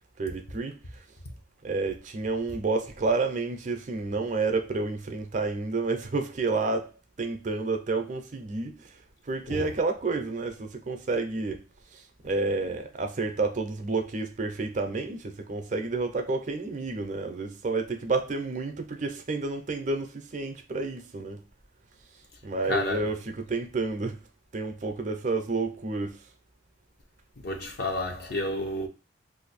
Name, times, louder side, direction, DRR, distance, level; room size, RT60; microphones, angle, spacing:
voice 1, 0.2-0.8 1.6-6.9 7.2-8.9 9.3-11.6 11.9-21.4 22.4-24.2 24.5-26.2, right 3 dB, 40° right, 0.5 m, -30 dB
voice 2, 22.7-23.1 27.4-28.9, left 1 dB, 55° left, 0.7 m, -31 dB
2.6 x 2.5 x 4.0 m
head